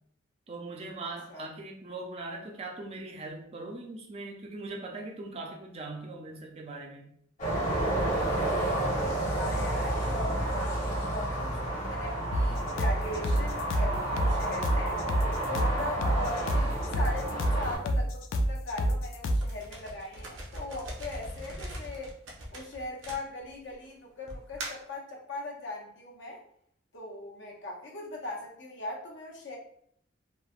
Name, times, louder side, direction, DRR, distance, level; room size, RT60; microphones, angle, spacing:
voice 1, 0.5-7.1, right 2 dB, 30° right, 1 dB, 0.4 m, -40 dB
sound 1, 7.4-17.8, right 1 dB, 40° left, 1.0 m, -31 dB
voice 2, 9.4-15.0 15.5-22.1 22.5-26.4 26.9-29.6, left 2 dB, 65° left, -1 dB, 0.7 m, -39 dB
sound 2, 12.3-19.5, equal, 90° left, 0.3 m, -28 dB
sound 3, 19.4-23.7 24.3-24.9, right 1 dB, 70° right, 0.6 m, -41 dB
3.2 x 2.0 x 2.4 m, 0.67 s
head